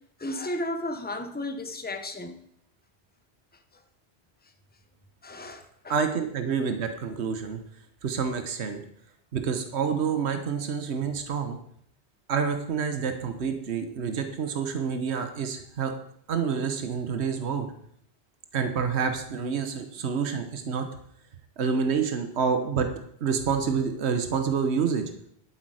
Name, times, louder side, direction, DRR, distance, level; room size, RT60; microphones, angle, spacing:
voice 1, 0.2-2.4 5.2-5.9, left 1 dB, 10° left, 6 dB, 0.9 m, -33 dB
voice 2, 5.9-7.6 8.0-8.8 9.3-11.6 12.3-15.9 16.3-17.7 18.5-20.9 21.6-22.9 23.2-25.0, right 6 dB, 75° right, 7 dB, 1.3 m, -28 dB
12.0 x 8.3 x 4.9 m, 0.68 s
omnidirectional pair, 1.1 m